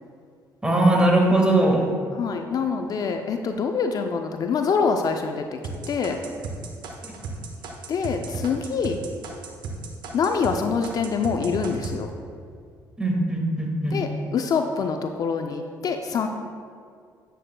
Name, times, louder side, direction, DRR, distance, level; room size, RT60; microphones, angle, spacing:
voice 1, 0.6-1.8 13.0-14.0, right 1 dB, 10° right, 0 dB, 1.7 m, -20 dB
voice 2, 2.2-5.6 5.9-6.2 7.9-9.0 10.1-12.1 13.9-16.3, left 5 dB, 50° left, 5 dB, 0.4 m, -25 dB
sound 1, 5.6-10.6 10.8-12.0, right 4 dB, 70° right, 1.0 m, -34 dB
9.0 x 7.6 x 2.2 m, 2.2 s
supercardioid pair, 80°, 8 cm